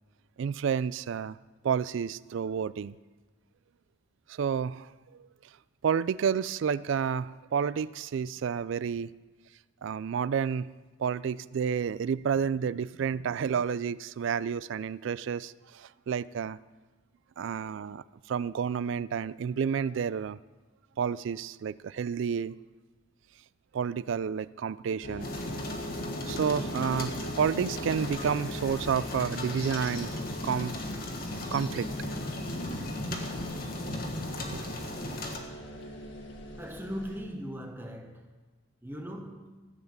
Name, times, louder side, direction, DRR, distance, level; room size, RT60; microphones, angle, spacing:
voice 1, 0.4-1.4 1.6-2.9 4.3-4.9 5.2-5.3 5.8-9.1 9.8-10.7 11.0-16.6 17.4-20.4 21.0-22.6 23.7-25.3 26.3-30.1 30.4-30.8 31.5-31.9 33.1-33.2 34.5-34.7, right 7 dB, 65° right, 0.3 m, -30 dB
sound 1, 25.0-37.2, equal, 60° left, 1.8 m, -42 dB
sound 2, 25.2-35.4, left 1 dB, 45° left, 1.4 m, -36 dB
voice 2, 36.6-38.3 38.8-39.7, equal, 10° right, 1.1 m, -39 dB
14.0 x 8.0 x 7.1 m
head